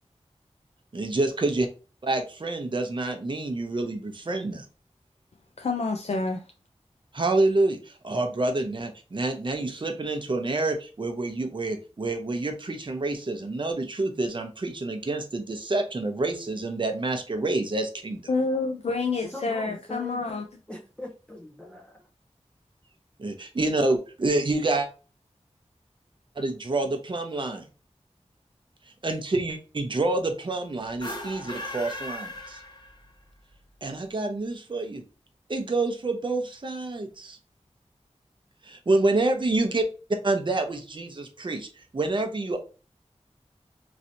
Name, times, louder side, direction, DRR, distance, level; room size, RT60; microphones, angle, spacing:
voice 1, 0.9-1.7 2.0-4.6 7.1-18.2 23.2-24.9 26.4-27.7 29.0-32.6 33.8-35.0 35.5-37.4 38.6-39.8 40.2-42.6, right 2 dB, 45° right, 0.6 m, -27 dB
voice 2, 5.6-6.4 18.3-20.4, left 3 dB, 65° left, 0.4 m, -28 dB
voice 3, 19.2-20.4 20.7-22.1, left 1 dB, 10° left, 0.6 m, -40 dB
sound 1, 30.9-33.2, left 1 dB, 40° left, 1.0 m, -37 dB
3.2 x 2.7 x 2.6 m
wide cardioid pair, 65°, 12 cm